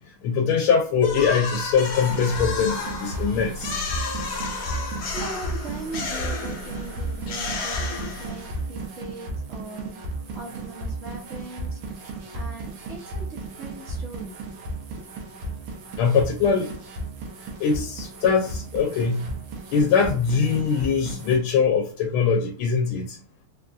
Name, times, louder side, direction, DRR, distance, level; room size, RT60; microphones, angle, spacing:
voice 1, 0.2-3.8 16.0-16.7 17.6-19.3 19.7-23.2, left 6 dB, 80° left, 1.4 m, -22 dB
sound 1, 1.0-8.7, left 4 dB, 60° left, 1.2 m, -32 dB
sound 2, 2.0-21.4, right 2 dB, 90° right, 1.6 m, -34 dB
voice 2, 4.6-11.8 12.3-14.4, right 3 dB, 70° right, 0.7 m, -40 dB
4.1 x 2.4 x 2.3 m
omnidirectional pair, 2.4 m